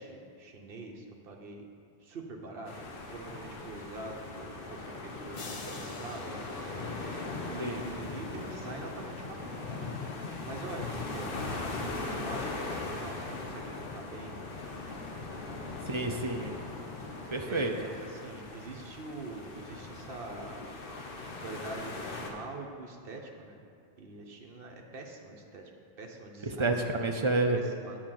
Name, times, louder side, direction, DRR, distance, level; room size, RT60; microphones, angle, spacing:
voice 1, 0.0-1.7 2.0-2.8 3.1-6.5 7.5-9.9 10.4-14.4 15.4-15.7 17.5-20.6 21.4-23.6 24.0-25.7 26.0-26.7 27.5-28.0, right 2 dB, 65° right, 1 dB, 1.1 m, -44 dB
sound 1, 2.7-22.3, left 3 dB, 60° left, 1.1 m, -39 dB
sound 2, 5.3-7.7, left 3 dB, 35° left, 0.7 m, -48 dB
voice 2, 15.9-16.6 17.3-17.7 26.4-27.6, right 2 dB, 35° right, 4 dB, 0.5 m, -29 dB
8.7 x 4.8 x 7.5 m, 2.3 s
omnidirectional pair, 1.1 m